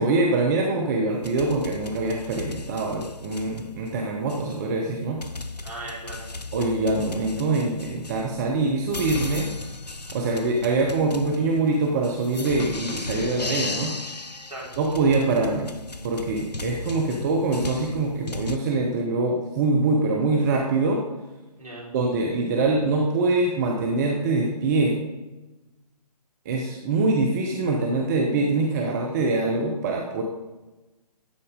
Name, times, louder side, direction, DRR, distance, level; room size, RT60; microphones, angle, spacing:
voice 1, 0.0-5.2 6.5-9.5 10.1-13.9 14.8-15.7 16.0-21.0 21.9-25.1 26.4-30.2, right 3 dB, 25° right, 0 dB, 0.9 m, -24 dB
sound 1, 1.1-18.6, left 3 dB, 85° left, 0.6 m, -36 dB
voice 2, 5.6-6.3 14.5-14.7 21.6-21.9, right 1 dB, 60° right, -3 dB, 3.6 m, -37 dB
12.5 x 4.2 x 5.1 m, 1.1 s
figure-of-eight pair, 135°, 20 cm